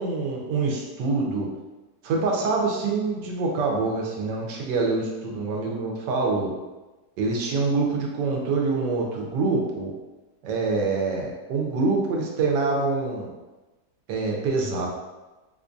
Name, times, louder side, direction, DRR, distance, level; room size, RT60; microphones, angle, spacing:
voice 1, 0.0-1.5 2.0-6.5 7.2-9.9 10.4-13.3 14.1-14.9, right 3 dB, 90° right, -1 dB, 1.3 m, -25 dB
4.2 x 2.3 x 2.5 m, 1.1 s
omnidirectional pair, 1.8 m